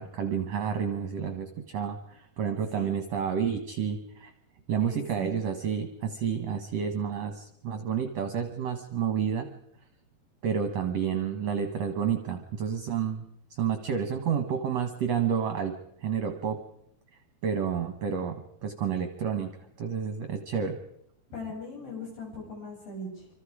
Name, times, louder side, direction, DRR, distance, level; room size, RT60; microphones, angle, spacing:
voice 1, 0.0-4.3 4.7-9.5 10.4-13.2 13.5-15.7 16.0-16.6 17.4-18.4 18.6-19.5 19.8-20.8, right 7 dB, 60° right, 7 dB, 2.0 m, -30 dB
voice 2, 4.8-5.4 21.3-23.3, left 2 dB, 65° left, -1 dB, 9.6 m, -39 dB
26.5 x 25.5 x 4.9 m, 0.75 s
omnidirectional pair, 4.5 m